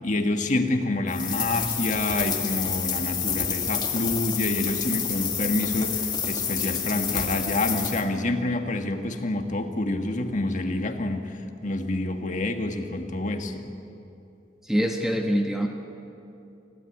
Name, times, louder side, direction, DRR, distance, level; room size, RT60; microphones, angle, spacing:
voice 1, 0.0-11.3 11.6-13.7, left 2 dB, 45° left, 5 dB, 1.7 m, -27 dB
sound 1, 1.1-8.0, left 7 dB, 25° left, 2.1 m, -29 dB
voice 2, 14.6-15.7, equal, 5° right, 2 dB, 1.2 m, -24 dB
25.5 x 16.5 x 9.6 m, 2.8 s
head